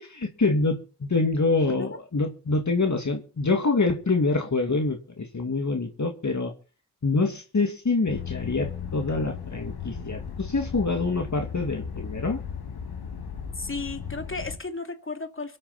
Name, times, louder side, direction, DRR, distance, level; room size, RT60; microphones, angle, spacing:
voice 1, 0.0-6.5 7.0-12.4, left 3 dB, 50° left, 2.5 m, -26 dB
sound 1, 8.1-14.6, left 7 dB, 85° left, 2.3 m, -36 dB
voice 2, 13.6-15.6, left 3 dB, 35° left, 2.9 m, -34 dB
23.5 x 8.9 x 4.4 m
cardioid pair, 50°, 37 cm